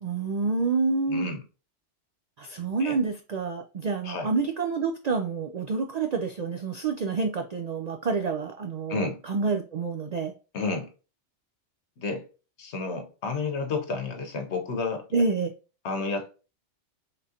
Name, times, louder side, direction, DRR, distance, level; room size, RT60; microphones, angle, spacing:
voice 1, 0.0-1.3 2.4-10.3 15.1-15.5, right 4 dB, 70° right, 0.4 m, -28 dB
voice 2, 1.1-1.4 2.8-3.0 4.0-4.3 8.9-9.2 10.5-10.9 12.0-12.2 12.6-15.2 15.8-16.3, left 3 dB, 70° left, 1.1 m, -31 dB
3.8 x 3.7 x 2.7 m
omnidirectional pair, 1.2 m